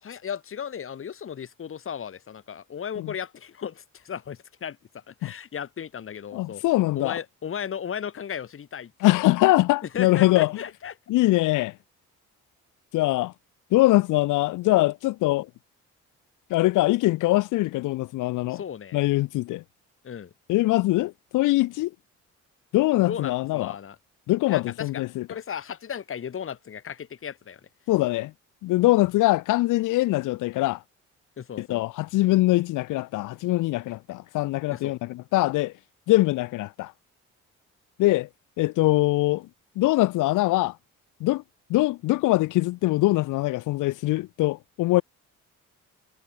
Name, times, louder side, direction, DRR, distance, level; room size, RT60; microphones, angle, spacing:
voice 1, 0.0-6.6 6.9-8.9 9.8-10.9 18.4-19.1 20.0-20.3 23.0-24.0 24.5-27.6 31.4-31.8 34.7-34.9, left 8 dB, 45° left, 1.5 m, -35 dB
voice 2, 6.3-7.2 9.0-10.5 11.1-11.7 12.9-13.3 13.7-15.5 16.5-18.6 18.9-19.6 20.5-21.9 22.7-23.7 24.3-25.3 27.9-28.3 28.6-30.8 31.6-35.7 36.1-36.9 38.0-38.3 38.6-39.5 39.8-40.7 41.2-41.4 41.7-45.0, left 18 dB, 90° left, 0.9 m, -22 dB
cardioid pair, 90°, 30 cm